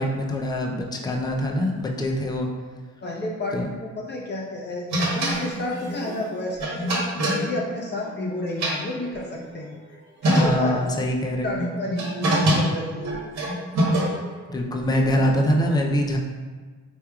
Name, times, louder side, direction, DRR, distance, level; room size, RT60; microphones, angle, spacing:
voice 1, 0.0-2.5 3.5-3.7 10.3-11.6 14.5-16.2, equal, 15° left, 1 dB, 0.5 m, -24 dB
voice 2, 3.0-10.0 10.2-10.8 11.4-13.1 15.0-15.2, left 1 dB, 35° left, -2 dB, 0.9 m, -31 dB
sound 1, 4.9-8.2 8.5-9.5 9.9-10.0 10.2-10.9 11.5-14.4, right 1 dB, 65° right, 1.2 m, -24 dB
4.5 x 3.4 x 2.3 m, 1.4 s
cardioid pair, 90°, 30 cm